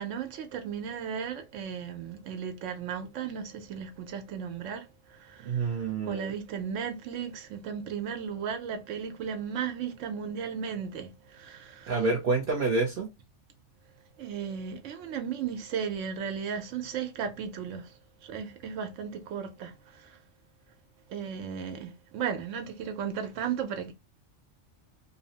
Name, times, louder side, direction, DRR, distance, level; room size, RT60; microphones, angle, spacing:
voice 1, 0.0-12.0 14.2-17.9 18.2-20.2 21.1-23.9, right 7 dB, 85° right, 0.9 m, -35 dB
voice 2, 5.4-6.3 11.9-13.1, right 3 dB, 55° right, 0.8 m, -28 dB
2.7 x 2.0 x 2.7 m
omnidirectional pair, 1.2 m